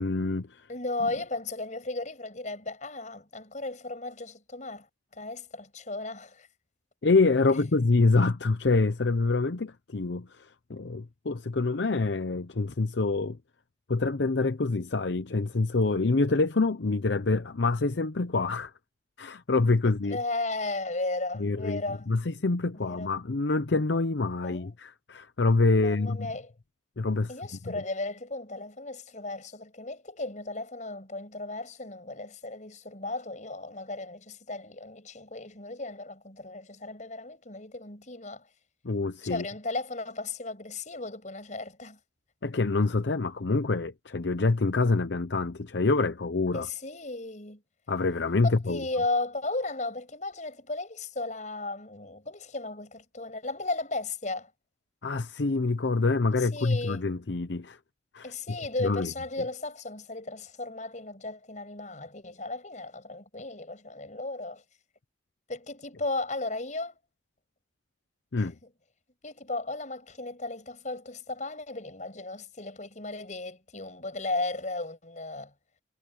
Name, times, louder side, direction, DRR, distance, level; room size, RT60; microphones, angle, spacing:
voice 1, 0.0-0.7 7.0-13.4 13.9-18.7 19.2-20.2 21.4-21.8 22.1-26.3 27.0-27.3 27.7-27.8 38.8-39.4 42.4-46.7 47.9-48.8 55.0-57.8 58.1-58.3 58.8-59.1 68.3-68.5, left 3 dB, 80° left, 0.8 m, -26 dB
voice 2, 0.7-4.9 5.1-6.5 20.0-22.1 22.7-23.1 24.4-24.8 25.8-26.5 27.3-38.5 39.2-42.0 46.5-47.6 48.4-54.5 56.4-57.0 58.2-64.6 65.5-67.0 68.3-68.5 69.2-75.5, left 2 dB, 45° left, 6.7 m, -35 dB
head